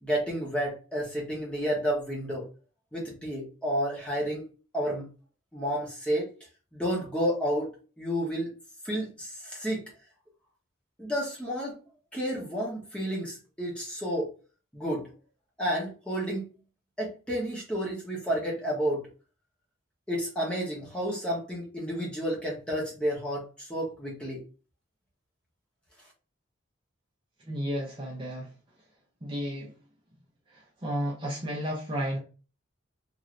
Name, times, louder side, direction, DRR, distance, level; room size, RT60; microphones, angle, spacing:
voice 1, 0.0-2.5 2.9-4.4 4.7-5.1 5.5-6.3 6.7-7.7 8.0-8.5 8.8-9.8 11.0-11.8 12.1-14.3 14.7-15.1 15.6-16.4 17.0-19.0 20.1-24.4, equal, 5° left, -4 dB, 1.0 m, -31 dB
voice 2, 27.4-28.5 29.2-29.7 30.5-32.2, equal, 25° right, -3 dB, 0.6 m, -32 dB
3.1 x 2.7 x 2.5 m, 0.35 s
head